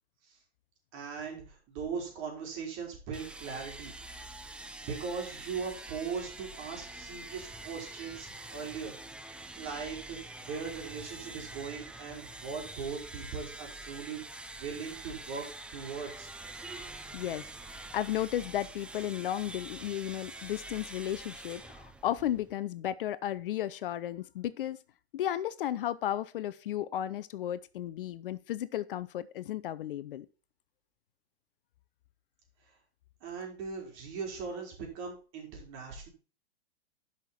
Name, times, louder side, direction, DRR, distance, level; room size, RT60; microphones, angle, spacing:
voice 1, 0.9-4.0 4.8-8.9 9.4-14.2 14.6-15.5 15.7-16.3 33.2-36.1, right 5 dB, 40° right, 4.2 m, -39 dB
sound 1, 3.1-22.6, right 2 dB, 5° right, 0.5 m, -46 dB
voice 2, 17.1-24.8 25.1-30.3, left 12 dB, 55° left, 0.7 m, -34 dB
11.5 x 5.9 x 4.3 m
figure-of-eight pair, 105°, 32 cm